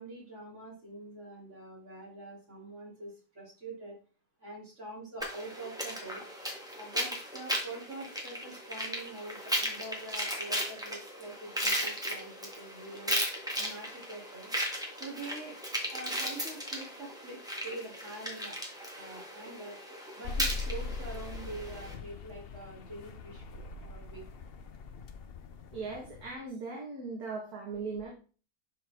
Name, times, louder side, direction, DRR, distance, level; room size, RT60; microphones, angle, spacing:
voice 1, 0.0-4.0 4.4-6.2 6.8-13.2 13.5-14.5 15.0-15.6 15.9-18.6 19.0-19.8 20.2-24.3, right 2 dB, 40° right, -3 dB, 3.6 m, -45 dB
sound 1, 5.2-21.9, equal, ahead, 1.8 m, -36 dB
sound 2, 20.2-26.3, left 4 dB, 85° left, 0.5 m, -41 dB
voice 2, 25.7-28.1, right 4 dB, 55° right, -2 dB, 2.1 m, -38 dB
11.0 x 4.8 x 3.6 m, 0.37 s
omnidirectional pair, 2.0 m